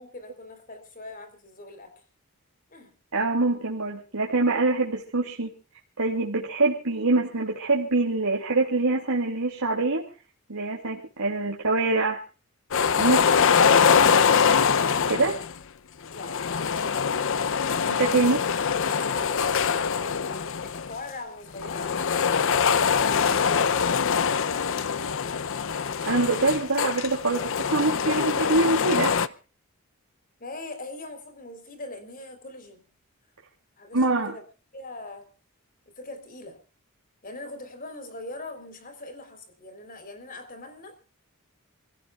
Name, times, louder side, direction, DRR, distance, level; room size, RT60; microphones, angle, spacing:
voice 1, 0.0-1.9 2.7-2.9 16.1-17.2 18.2-22.0 23.1-25.2 30.4-32.9 33.8-34.4 34.7-35.3 36.0-36.6 37.2-41.1, left 2 dB, 40° left, 7 dB, 4.0 m, -41 dB
voice 2, 3.1-5.5 6.0-10.0 10.5-12.2 13.0-13.4 15.1-15.4 17.9-18.4 26.0-29.1 33.9-34.4, right 3 dB, 90° right, -1 dB, 2.8 m, -24 dB
sound 1, 12.7-15.5 16.1-20.9 21.6-29.3, left 6 dB, 60° left, 0.7 m, -23 dB
28.0 x 16.5 x 2.4 m, 0.36 s
head